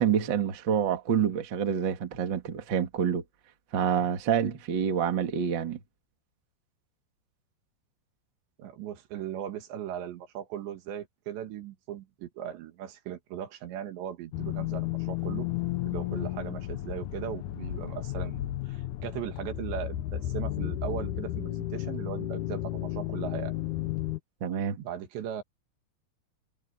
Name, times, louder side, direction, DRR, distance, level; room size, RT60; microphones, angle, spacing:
voice 1, 0.0-3.2 3.7-5.8 24.4-24.8, right 8 dB, 40° right, 1.7 m, -27 dB
voice 2, 8.6-15.5 15.9-23.5 24.8-25.4, right 10 dB, 85° right, 4.2 m, -38 dB
sound 1, 14.3-24.2, left 14 dB, 85° left, 1.7 m, -33 dB
omnidirectional pair, 4.9 m